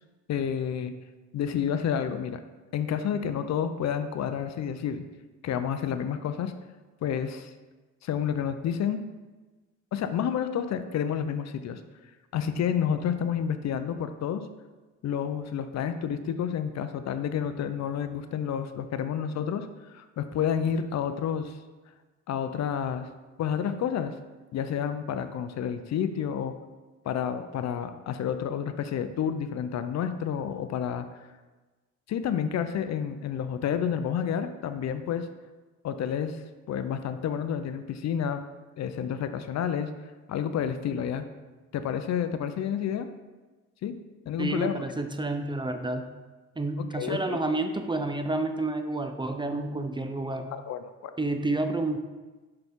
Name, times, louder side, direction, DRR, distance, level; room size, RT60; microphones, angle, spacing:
voice 1, 0.3-0.9 1.3-2.4 2.7-5.0 5.4-6.5 7.0-7.5 8.0-9.1 9.9-11.8 12.3-14.5 15.0-21.6 22.3-23.1 23.4-24.1 24.5-26.5 27.0-31.1 32.1-35.3 35.8-36.4 36.7-38.4 38.8-39.9 40.3-41.2 41.7-43.1 43.8-44.0 44.3-44.8 46.8-47.4 50.5-51.1, left 8 dB, 60° left, 10 dB, 0.6 m, -30 dB
voice 2, 44.4-46.1 46.6-50.5 51.2-52.0, right 2 dB, 15° right, 7 dB, 0.5 m, -29 dB
6.7 x 5.9 x 3.6 m, 1.2 s
cardioid pair, 90°, 30 cm